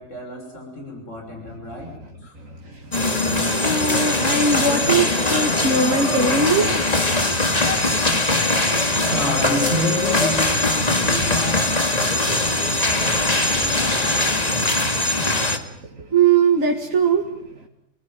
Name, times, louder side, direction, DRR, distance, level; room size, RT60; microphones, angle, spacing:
voice 1, 0.0-1.9 2.2-2.3 9.1-14.6, left 1 dB, 65° left, 7.0 m, -30 dB
voice 2, 2.3-6.7 7.9-8.2 15.8-17.7, right 4 dB, 80° right, 2.6 m, -21 dB
sound 1, 2.9-15.6, left 2 dB, 30° left, 2.3 m, -21 dB
27.0 x 19.5 x 9.3 m
omnidirectional pair, 1.4 m